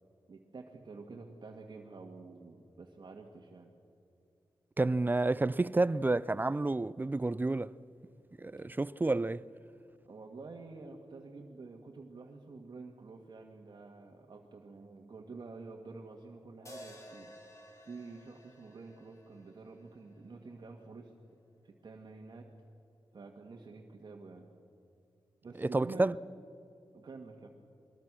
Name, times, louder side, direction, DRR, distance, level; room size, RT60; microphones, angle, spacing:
voice 1, 0.3-3.7 10.0-17.3 17.8-21.1 21.6-22.5 23.1-24.5 25.4-26.1 26.9-27.5, right 3 dB, 55° right, 1.7 m, -49 dB
voice 2, 4.8-7.7 8.4-9.4 25.6-26.2, right 2 dB, 20° right, 0.4 m, -30 dB
sound 1, 16.7-20.9, equal, 35° left, 3.6 m, -54 dB
23.5 x 20.5 x 6.2 m
cardioid pair, 75°, 9 cm